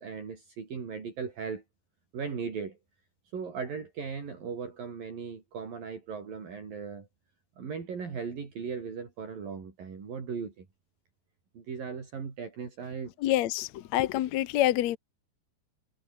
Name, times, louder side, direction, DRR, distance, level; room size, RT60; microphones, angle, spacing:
voice 1, 0.0-1.6 2.1-2.8 3.3-7.1 7.6-10.7 11.5-13.1, right 6 dB, 60° right, 6.3 m, -38 dB
voice 2, 13.2-15.0, left 14 dB, 75° left, 1.6 m, -27 dB
omnidirectional pair, 4.6 m